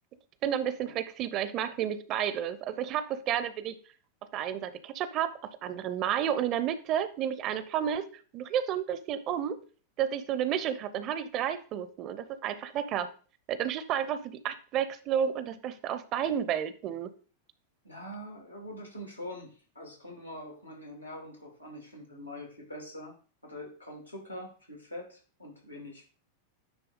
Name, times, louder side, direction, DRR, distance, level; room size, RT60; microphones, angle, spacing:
voice 1, 0.4-3.8 4.3-8.1 8.3-9.6 10.0-13.1 13.5-17.1, right 9 dB, 35° right, 13 dB, 0.6 m, -31 dB
voice 2, 17.8-23.1 23.4-26.0, left 1 dB, 90° left, 1 dB, 2.5 m, -44 dB
9.7 x 3.4 x 3.8 m, 0.39 s
figure-of-eight pair, 90°, 0 cm